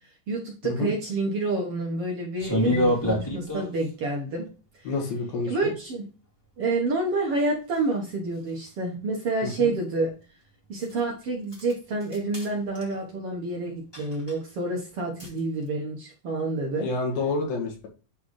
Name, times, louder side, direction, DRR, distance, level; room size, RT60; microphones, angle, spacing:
voice 1, 0.3-4.5 4.7-4.9 5.4-6.1 6.6-10.1 10.7-16.9, right 2 dB, 55° right, -1 dB, 1.8 m, -28 dB
sound 1, 2.4-3.9 7.7-7.8 8.7-8.8 10.8-11.0 11.5-11.7 12.0-12.5 12.7-13.0 13.9-14.4 15.2-15.4, equal, 10° left, 1.6 m, -27 dB
voice 2, 4.9-5.7 9.6-9.7 16.8-17.9, left 3 dB, 85° left, 1 dB, 3.7 m, -29 dB
10.5 x 4.0 x 3.2 m, 0.34 s
omnidirectional pair, 4.0 m